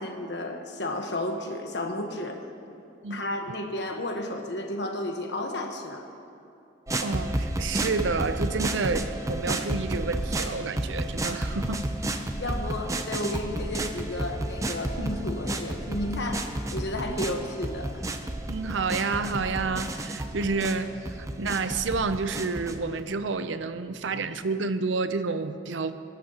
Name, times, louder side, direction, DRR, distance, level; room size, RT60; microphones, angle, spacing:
voice 1, 0.0-2.4 2.7-2.8 3.1-6.1 12.4-18.0, left 1 dB, 65° left, 4 dB, 1.2 m, -32 dB
sound 1, 6.9-23.0, right 1 dB, 15° right, 0.6 m, -32 dB
voice 2, 7.0-11.8 18.5-25.9, right 4 dB, 80° right, 11 dB, 0.6 m, -29 dB
sound 2, 11.3-24.3, left 1 dB, 60° right, 2.5 m, -50 dB
22.0 x 12.5 x 3.0 m, 2.6 s
head